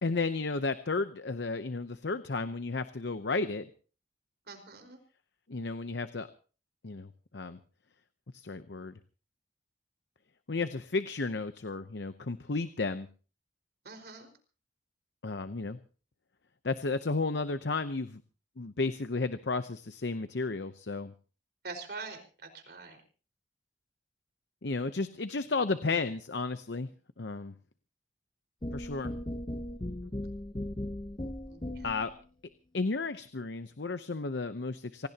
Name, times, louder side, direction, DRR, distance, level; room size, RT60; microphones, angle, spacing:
voice 1, 0.0-3.7 5.5-6.3 6.8-7.6 8.3-9.0 10.5-13.1 15.2-15.8 16.6-18.2 18.6-21.1 24.6-26.9 27.2-27.5 28.7-29.1 31.8-32.1 32.7-35.1, left 3 dB, 75° left, 11 dB, 0.8 m, -33 dB
voice 2, 4.5-5.0 13.8-14.3 21.6-22.2 22.5-23.0 30.0-30.1 31.5-31.9, right 3 dB, 60° right, 5 dB, 4.9 m, -44 dB
sound 1, 28.6-32.1, left 1 dB, 25° left, 0.9 m, -37 dB
26.5 x 17.5 x 2.9 m, 0.38 s
head